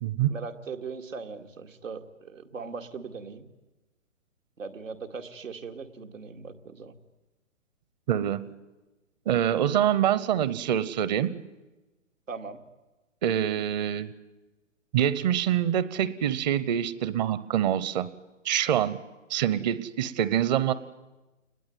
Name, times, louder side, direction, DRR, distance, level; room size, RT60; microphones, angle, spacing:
voice 1, 0.3-3.4 4.6-6.9 12.3-12.6, right 4 dB, 80° right, 5 dB, 2.3 m, -39 dB
voice 2, 8.1-8.5 9.3-11.3 13.2-14.1 14.9-18.1 18.4-19.0 19.3-20.7, right 10 dB, 35° right, 16 dB, 0.9 m, -25 dB
28.5 x 20.5 x 9.4 m, 1.1 s
figure-of-eight pair, 130°, 39 cm